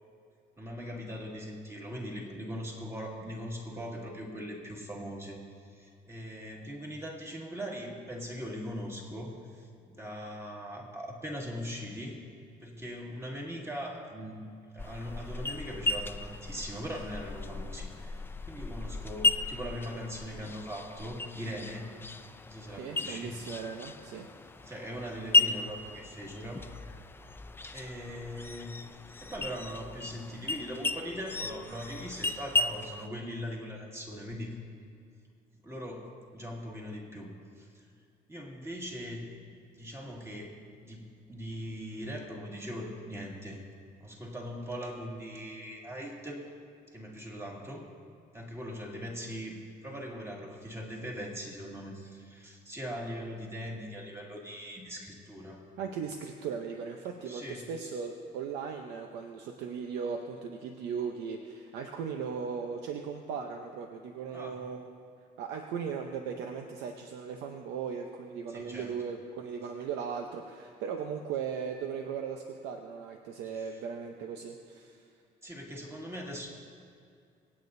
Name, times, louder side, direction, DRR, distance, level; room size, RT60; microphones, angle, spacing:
voice 1, 0.6-5.4 5.7-12.2 12.6-14.4 14.7-18.2 18.5-21.9 22.5-23.4 24.7-26.6 27.6-28.7 29.2-34.5 35.6-37.8 38.3-39.3 39.8-43.6 44.0-46.4 46.9-47.9 48.3-55.6 57.3-57.7 64.3-64.7 68.5-68.9 73.4-73.8 75.4-76.5, equal, 15° right, -1 dB, 2.1 m, -40 dB
sound 1, 14.8-33.1, left 2 dB, 15° left, 0.4 m, -34 dB
voice 2, 22.8-24.3 55.8-65.0 65.4-75.0, right 6 dB, 85° right, 4 dB, 0.8 m, -38 dB
25.5 x 8.8 x 2.7 m, 2.3 s
cardioid pair, 110°, 17 cm